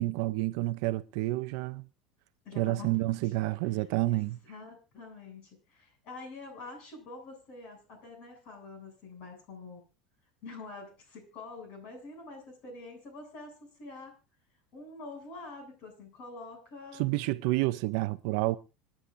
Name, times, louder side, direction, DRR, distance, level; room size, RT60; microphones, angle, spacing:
voice 1, 0.0-1.8 2.6-4.4 17.0-18.6, right 18 dB, 55° right, 0.7 m, -29 dB
voice 2, 2.4-3.3 3.7-9.8 10.4-14.1 14.7-17.0, left 3 dB, 40° left, 7.9 m, -46 dB
27.0 x 10.0 x 2.7 m
supercardioid pair, 165°, 3 cm